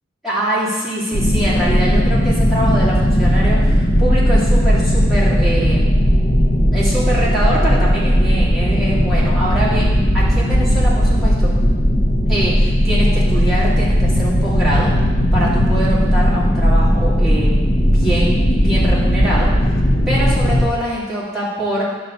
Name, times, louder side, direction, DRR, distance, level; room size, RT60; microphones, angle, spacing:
voice 1, 0.2-5.9 6.7-11.5 12.3-14.9 15.3-19.5 20.1-21.9, right 1 dB, ahead, -10 dB, 2.5 m, -23 dB
sound 1, 1.1-20.7, equal, 30° left, 0.8 m, -16 dB
9.5 x 4.0 x 6.7 m, 1.4 s
head